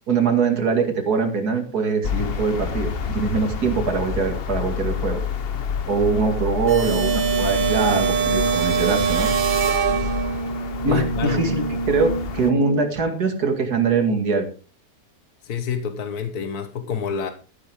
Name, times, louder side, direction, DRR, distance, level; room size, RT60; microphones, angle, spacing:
voice 1, 0.1-5.2 5.9-9.3 9.9-10.1 10.8-14.5, right 5 dB, 80° right, 2.7 m, -23 dB
sound 1, 2.0-12.5, left 6 dB, 45° left, 1.0 m, -29 dB
Brass instrument, 6.7-13.1, right 2 dB, 30° left, 0.6 m, -28 dB
sound 2, 6.7-10.6, right 8 dB, 45° right, 0.7 m, -23 dB
voice 2, 10.9-11.4 15.4-17.3, left 7 dB, 75° left, 1.7 m, -27 dB
13.5 x 11.5 x 3.7 m
omnidirectional pair, 1.6 m